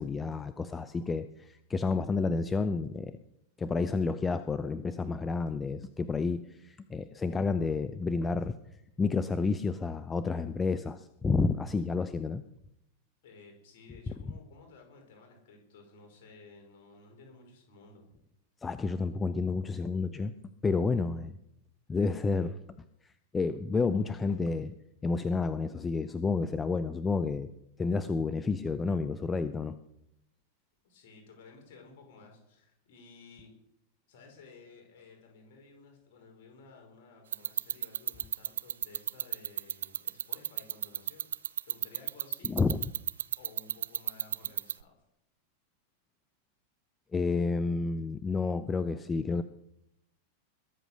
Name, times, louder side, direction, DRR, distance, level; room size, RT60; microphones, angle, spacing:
voice 1, 0.0-3.2 3.6-8.6 9.0-12.4 18.6-20.3 20.6-21.4 21.9-22.6 23.3-24.7 25.0-27.5 27.8-29.8 42.4-42.8 47.1-49.4, left 4 dB, 15° left, 13 dB, 0.6 m, -30 dB
voice 2, 13.2-18.1 30.8-33.5 34.1-41.2 41.6-42.6 43.4-45.0, left 4 dB, 50° left, 2 dB, 5.3 m, -55 dB
sound 1, 37.3-44.8, right 9 dB, 65° right, 0.5 m, -30 dB
21.5 x 8.1 x 6.5 m, 0.79 s
figure-of-eight pair, 90°, 0 cm